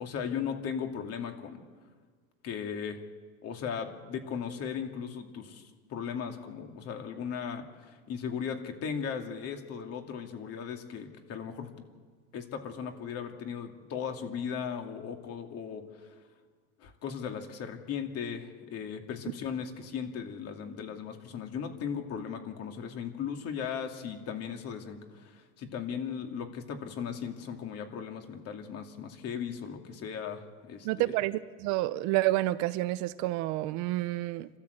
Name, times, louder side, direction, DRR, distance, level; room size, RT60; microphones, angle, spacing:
voice 1, 0.0-1.6 2.4-3.0 3.4-11.7 12.3-16.1 16.8-31.2, left 7 dB, 40° left, 4 dB, 2.6 m, -37 dB
voice 2, 30.8-34.5, right 17 dB, 50° right, 14 dB, 0.7 m, -29 dB
29.5 x 13.0 x 8.1 m, 1.6 s
supercardioid pair, 140°, 39 cm